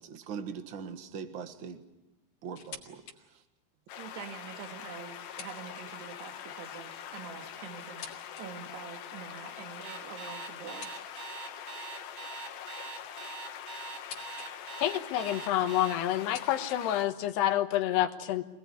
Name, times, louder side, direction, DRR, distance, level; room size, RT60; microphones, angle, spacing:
voice 1, 0.0-1.8 2.4-3.0 3.3-3.4, right 6 dB, 70° right, 8 dB, 1.1 m, -41 dB
sound 1, 2.5-3.2 3.6-3.7 4.5-6.2 7.1-8.5 10.7-11.5 12.7-14.5 14.8-15.4 16.1-17.5, left 5 dB, 45° left, 3.6 m, -50 dB
sound 2, 3.9-17.0, left 9 dB, 70° left, 3.0 m, -44 dB
voice 2, 4.0-11.5, right 8 dB, 90° right, 6 dB, 3.8 m, -46 dB
Alarm, 9.8-16.0, right 6 dB, 55° right, 1.7 m, -43 dB
voice 3, 14.8-18.4, left 12 dB, 85° left, 9 dB, 3.3 m, -28 dB
26.5 x 20.0 x 9.6 m, 1.0 s
omnidirectional pair, 4.6 m